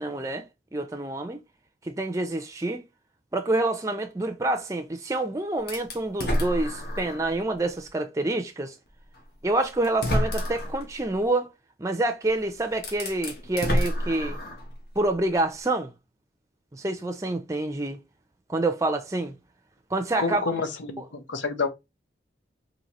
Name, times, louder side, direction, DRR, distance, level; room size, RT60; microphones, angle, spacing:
voice 1, 0.0-1.4 1.8-2.8 3.3-8.7 9.4-11.5 11.8-14.4 15.0-15.9 16.7-18.0 18.5-19.3 19.9-20.4 21.0-21.1, right 2 dB, 15° right, 0.4 m, -27 dB
sound 1, 5.7-7.3 7.8-7.9 9.2-9.3 9.8-10.8 12.2-12.3 12.7-14.7, equal, 55° left, 1.1 m, -28 dB
voice 2, 20.2-21.7, left 4 dB, 85° left, 0.9 m, -28 dB
4.1 x 2.8 x 3.0 m
head